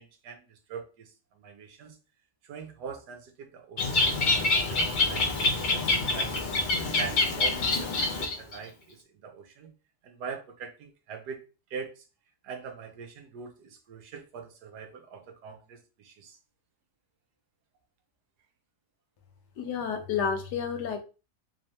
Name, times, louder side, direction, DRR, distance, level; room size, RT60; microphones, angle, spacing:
voice 1, 0.0-2.0 2.4-4.2 4.6-5.9 6.1-9.7 10.0-11.4 11.7-12.0 12.4-16.4, right 5 dB, 75° right, 5 dB, 1.3 m, -43 dB
Bird, 3.8-8.6, left 3 dB, 60° left, 0.5 m, -26 dB
voice 2, 19.6-21.0, left 6 dB, 80° left, 6 dB, 1.3 m, -30 dB
3.5 x 3.1 x 2.7 m, 0.32 s
omnidirectional pair, 1.8 m